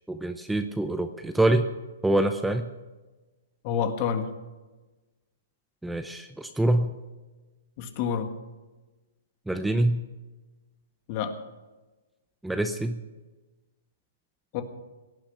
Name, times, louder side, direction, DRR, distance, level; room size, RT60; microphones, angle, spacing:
voice 1, 0.1-1.6 2.0-2.6 5.8-6.9 9.5-10.0 12.4-13.0, right 1 dB, 5° right, 8 dB, 0.6 m, -25 dB
voice 2, 3.6-4.3 7.8-8.3 11.1-11.3 14.5-14.6, left 7 dB, 40° left, 7 dB, 1.7 m, -28 dB
17.5 x 10.0 x 5.8 m, 1.2 s
hypercardioid pair, 145°, 0 cm